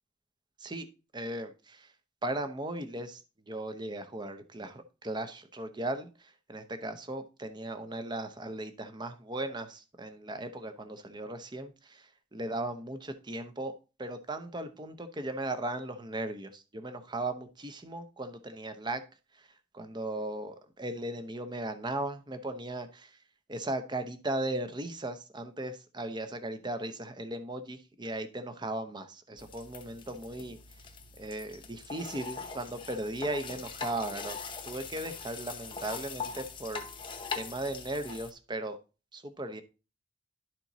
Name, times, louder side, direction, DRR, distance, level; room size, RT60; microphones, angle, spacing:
voice 1, 1.1-1.9 2.2-3.2 3.5-13.7 14.0-19.0 19.7-23.1 23.5-30.6 31.2-34.4 34.6-36.9 37.3-38.8 39.1-39.6, right 1 dB, 20° right, 0.7 m, -37 dB
sound 1, 29.4-38.3, left 5 dB, 25° left, 0.8 m, -42 dB
11.5 x 4.4 x 4.0 m
head